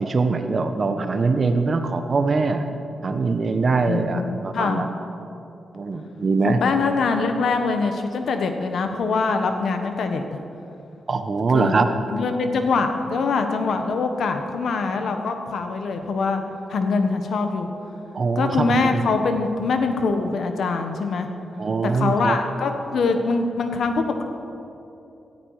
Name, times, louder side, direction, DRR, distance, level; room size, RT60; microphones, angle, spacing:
voice 1, 0.0-2.7 3.0-4.9 5.7-6.6 11.1-11.9 18.1-19.0 21.6-22.4, right 4 dB, 50° right, 7 dB, 1.2 m, -22 dB
voice 2, 3.9-4.9 6.4-10.2 11.5-11.8 12.1-16.4 16.7-17.7 18.3-21.3 21.8-24.2, left 4 dB, 75° left, 6 dB, 1.4 m, -23 dB
17.5 x 13.5 x 5.0 m, 2.8 s
cardioid pair, 80°, 0 cm